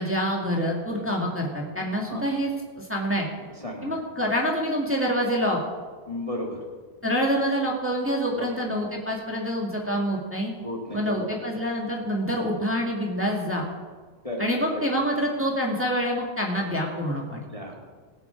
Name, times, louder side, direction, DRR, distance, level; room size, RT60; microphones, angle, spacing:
voice 1, 0.0-2.5 2.8-3.3 3.8-5.6 7.0-10.5 10.9-13.6 14.4-17.4, equal, 5° right, -2 dB, 1.4 m, -26 dB
voice 2, 3.6-4.0 6.1-6.6 8.3-8.7 10.6-11.6 14.2-14.9 17.5-17.8, left 1 dB, 20° left, -1 dB, 1.0 m, -34 dB
21.5 x 7.2 x 4.6 m, 1.4 s
omnidirectional pair, 3.3 m